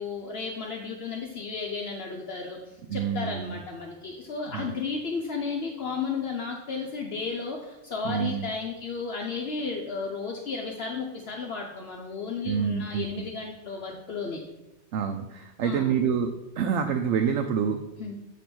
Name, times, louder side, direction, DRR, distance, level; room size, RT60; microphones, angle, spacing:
voice 1, 0.0-14.4 15.6-15.9 18.0-18.1, left 4 dB, 65° left, 1 dB, 1.0 m, -33 dB
voice 2, 2.9-3.6 4.5-4.7 8.0-8.5 12.5-13.3 14.9-17.8, right 7 dB, 90° right, 4 dB, 0.9 m, -27 dB
8.3 x 3.0 x 6.0 m, 0.98 s
omnidirectional pair, 1.2 m